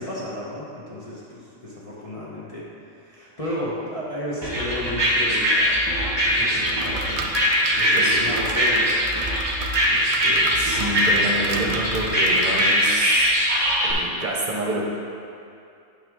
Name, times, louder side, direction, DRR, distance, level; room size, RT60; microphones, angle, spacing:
voice 1, 0.0-2.7 3.0-5.8 6.2-7.3 7.7-9.4 9.9-10.7, left 1 dB, 30° left, -8 dB, 1.0 m, -33 dB
sound 1, 4.4-13.9, equal, 20° right, 1.0 m, -21 dB
sound 2, 6.6-13.0, right 4 dB, 80° right, 1.1 m, -35 dB
voice 2, 10.6-13.3 13.8-14.9, right 1 dB, 40° right, -3 dB, 1.1 m, -28 dB
9.2 x 5.3 x 3.7 m, 2.5 s
omnidirectional pair, 1.4 m